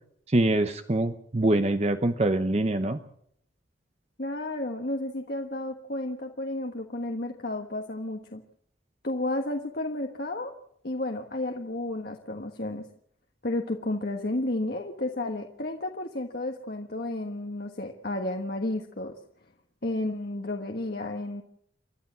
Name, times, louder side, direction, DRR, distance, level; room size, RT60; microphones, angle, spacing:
voice 1, 0.3-3.0, right 1 dB, 35° right, 8 dB, 0.8 m, -24 dB
voice 2, 4.2-8.4 9.0-10.5 10.8-12.9 13.4-19.1 19.8-21.4, left 1 dB, 50° left, 3 dB, 1.4 m, -32 dB
29.0 x 12.5 x 7.4 m, 0.70 s
head